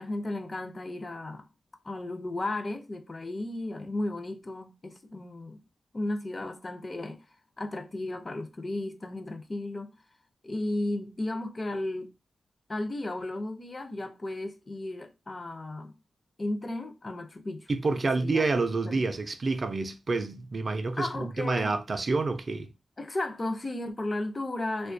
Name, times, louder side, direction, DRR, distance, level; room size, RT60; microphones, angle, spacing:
voice 1, 0.0-1.5 1.8-5.6 5.9-7.2 7.6-9.9 10.4-12.1 12.7-16.0 16.4-18.5 18.8-19.0 21.0-21.8 23.0-24.9, left 2 dB, 35° left, 0.4 m, -34 dB
voice 2, 17.7-22.7, right 3 dB, 50° right, 0.4 m, -28 dB
2.3 x 2.2 x 2.5 m
cardioid pair, 70°, 0 cm